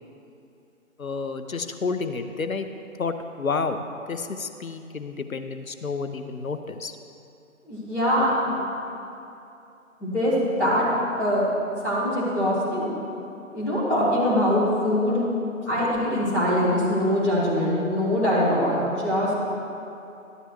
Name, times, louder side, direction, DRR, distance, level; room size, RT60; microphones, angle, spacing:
voice 1, 1.0-2.7 3.0-3.8 4.1-6.9, left 4 dB, 75° left, 8 dB, 0.7 m, -30 dB
voice 2, 7.6-8.6 10.0-10.9 11.2-11.5 11.8-12.9 13.5-15.2 15.6-19.4, equal, 5° left, -14 dB, 1.0 m, -23 dB
12.5 x 11.0 x 3.0 m, 2.7 s
figure-of-eight pair, 145°, 42 cm